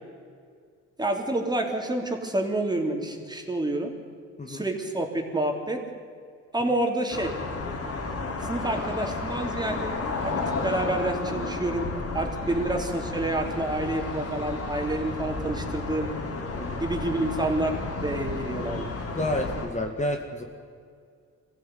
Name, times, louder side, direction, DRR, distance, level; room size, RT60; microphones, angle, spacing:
voice 1, 1.0-3.9 4.4-5.8 6.5-7.3 7.7-7.8 8.5-9.9 10.2-11.9 12.1-16.1 16.8-18.9, right 1 dB, 15° right, 2 dB, 3.6 m, -28 dB
sound 1, 7.1-19.7, left 3 dB, 50° left, 4.0 m, -32 dB
voice 2, 19.2-20.4, left 1 dB, 25° left, 3 dB, 2.1 m, -30 dB
22.0 x 15.5 x 9.4 m, 2.2 s
cardioid pair, 90°, 30 cm